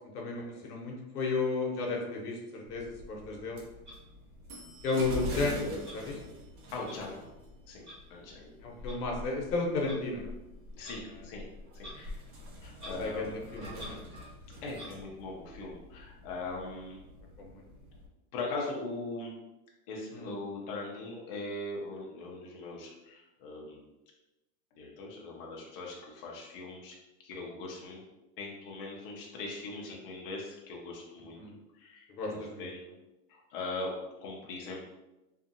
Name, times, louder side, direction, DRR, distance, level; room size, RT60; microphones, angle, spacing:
voice 1, 0.0-3.6 4.8-6.2 8.6-10.3 13.0-14.0 17.4-17.5 20.1-20.3 31.4-31.5 32.2-32.7, left 3 dB, 85° left, 0 dB, 0.9 m, -33 dB
sound 1, 2.7-18.1, left 1 dB, 70° right, 0.9 m, -44 dB
Clock, 3.9-4.0 4.8-5.0 5.8-6.0 6.8-7.0 7.8-8.0 8.9-9.0 9.8-10.0 10.8-11.0 11.8-12.0 12.2-12.3 12.7-13.0 13.4-14.3 14.7-14.9, right 1 dB, 15° right, 1.4 m, -47 dB
voice 2, 6.7-7.2 7.6-8.5 10.7-11.5 11.7-12.2 12.6-13.4 14.6-17.0 18.3-19.3 19.9-23.8 24.8-26.9 27.2-28.0 28.4-31.4 31.8-32.8 33.3-34.9, left 2 dB, 40° left, -2 dB, 0.5 m, -40 dB
2.6 x 2.4 x 2.6 m, 1.0 s
supercardioid pair, 160°, 45 cm